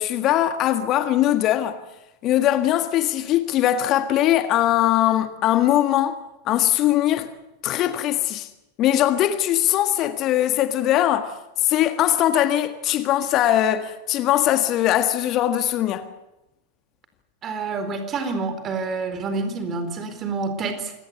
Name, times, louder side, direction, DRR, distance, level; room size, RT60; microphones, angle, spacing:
voice 1, 0.0-1.8 2.2-6.2 6.5-7.3 7.6-8.5 8.8-11.3 11.6-16.1, left 12 dB, 35° left, 1.6 m, -21 dB
voice 2, 17.4-20.9, right 4 dB, 25° right, 4.2 m, -28 dB
26.5 x 18.5 x 8.1 m
figure-of-eight pair, 90°, 0 cm